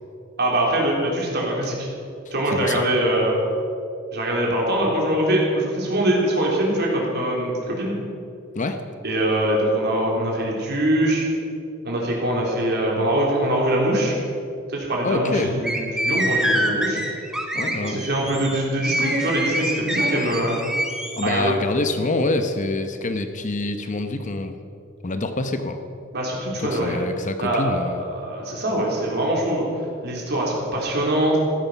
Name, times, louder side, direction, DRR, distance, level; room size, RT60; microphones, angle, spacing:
voice 1, 0.4-1.9 2.3-3.3 4.1-7.9 9.0-11.3 11.8-14.2 14.7-17.0 17.8-20.6 21.2-21.5 26.1-27.0 27.4-29.6 30.0-31.4, right 1 dB, 55° right, -2 dB, 3.7 m, -23 dB
voice 2, 2.5-2.8 8.5-8.8 15.0-15.5 17.5-18.0 21.2-24.5 25.0-25.8 26.6-28.0, left 2 dB, 40° left, 7 dB, 0.8 m, -26 dB
sound 1, 15.6-21.3, equal, 5° right, 1.4 m, -25 dB
15.0 x 13.0 x 5.6 m, 2.6 s
head